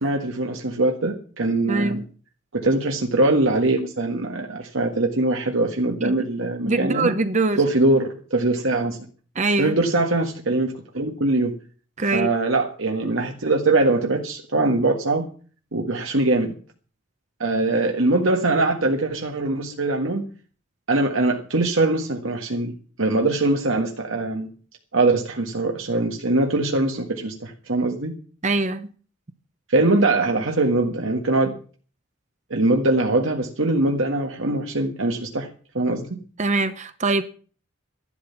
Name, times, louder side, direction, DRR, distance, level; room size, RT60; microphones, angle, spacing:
voice 1, 0.0-2.0 2.5-7.1 7.6-9.0 9.6-11.5 12.1-15.3 15.7-16.6 17.4-20.3 20.9-22.7 23.0-24.5 24.9-28.1 29.7-31.6 32.5-35.5 35.7-36.2, right 2 dB, 80° right, 1.7 m, -22 dB
voice 2, 1.7-2.0 6.0-6.3 6.6-7.6 9.4-9.8 12.0-12.3 28.4-28.9 36.4-37.2, right 3 dB, 35° right, 0.8 m, -23 dB
13.0 x 12.0 x 5.9 m
head